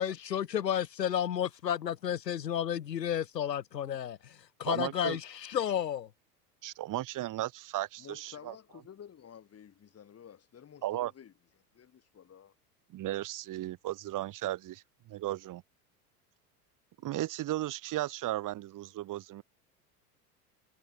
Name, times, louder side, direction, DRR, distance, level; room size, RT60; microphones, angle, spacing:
voice 1, 0.0-6.1, left 10 dB, 85° left, 1.5 m, -32 dB
voice 2, 4.7-5.2 6.6-8.5 10.8-11.1 12.9-14.8 15.1-15.6 17.0-19.4, right 15 dB, 40° right, 2.3 m, -35 dB
voice 3, 8.0-11.3 11.7-12.5, left 8 dB, 30° left, 6.5 m, -52 dB
hypercardioid pair, 85°, 48 cm